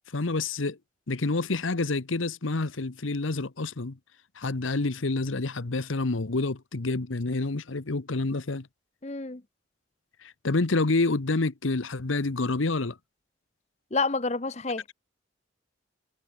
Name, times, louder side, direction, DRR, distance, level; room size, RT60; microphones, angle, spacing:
voice 1, 0.1-0.8 1.1-4.0 4.4-8.7 10.2-13.0, left 3 dB, 85° left, 1.1 m, -28 dB
voice 2, 9.0-9.4 13.9-14.9, left 3 dB, 35° left, 1.0 m, -29 dB
head